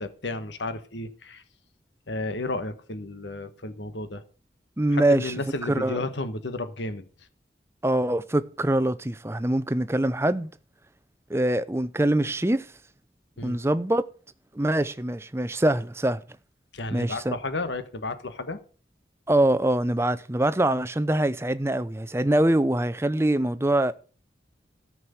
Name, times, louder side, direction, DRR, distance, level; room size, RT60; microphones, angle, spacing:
voice 1, 0.0-1.4 2.1-4.2 4.9-7.0 13.4-13.6 16.7-18.6, left 2 dB, 90° left, 1.4 m, -32 dB
voice 2, 4.8-5.3 5.7-6.0 7.8-10.5 11.3-12.7 13.4-14.0 14.5-16.2 16.9-17.4 19.3-23.9, right 1 dB, 15° right, 0.6 m, -24 dB
13.5 x 6.2 x 8.2 m
head